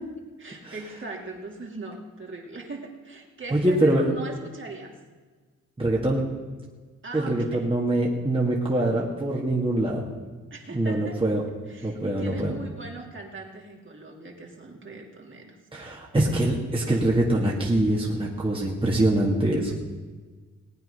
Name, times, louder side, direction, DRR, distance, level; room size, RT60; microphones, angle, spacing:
voice 1, 0.4-4.9 7.0-7.7 10.5-11.2 11.7-15.6, right 3 dB, 40° right, 0 dB, 2.8 m, -39 dB
voice 2, 3.5-4.1 5.8-6.2 7.1-10.1 10.7-11.4 11.8-12.5 15.7-19.7, right 1 dB, 15° right, -3 dB, 2.1 m, -24 dB
19.5 x 8.9 x 5.6 m, 1.4 s
cardioid pair, 80°, 32 cm